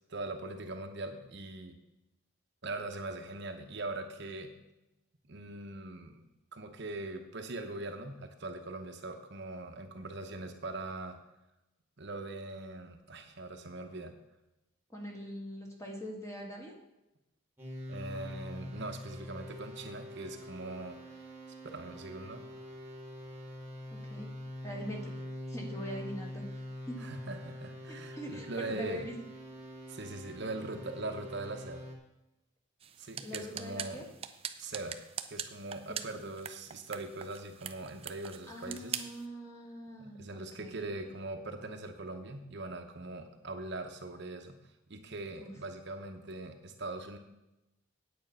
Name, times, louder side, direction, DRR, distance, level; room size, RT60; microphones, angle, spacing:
voice 1, 0.1-1.7 2.6-4.5 5.3-6.2 6.5-11.2 12.0-14.1 17.9-21.3 21.6-22.4 27.0-29.1 29.9-31.8 33.0-34.0 34.6-35.0 35.3-39.0 40.0-44.6 44.9-47.2, right 2 dB, 55° right, 5 dB, 1.1 m, -41 dB
voice 2, 14.9-16.7 24.0-24.3 24.6-25.1 25.5-27.0 27.9-29.1 33.2-34.1 35.9-36.0 38.5-40.9 45.4-45.5, equal, 15° left, 0 dB, 2.1 m, -43 dB
sound 1, 17.6-31.9, left 1 dB, 10° right, 1.8 m, -44 dB
sound 2, 32.8-39.2, right 8 dB, 30° right, 0.5 m, -43 dB
9.2 x 8.5 x 5.6 m, 0.95 s
head